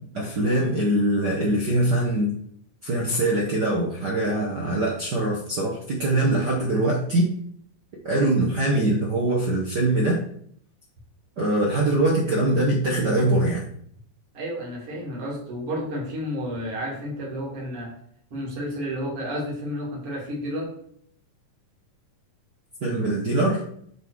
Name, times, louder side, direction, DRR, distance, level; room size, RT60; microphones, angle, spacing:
voice 1, 0.1-2.3 2.8-7.3 8.0-10.2 11.4-13.6 22.8-23.6, right 1 dB, 65° right, -3 dB, 1.0 m, -23 dB
voice 2, 14.3-18.0 18.3-20.8, equal, 45° right, -4 dB, 3.1 m, -31 dB
8.9 x 4.0 x 4.7 m, 0.64 s
omnidirectional pair, 3.9 m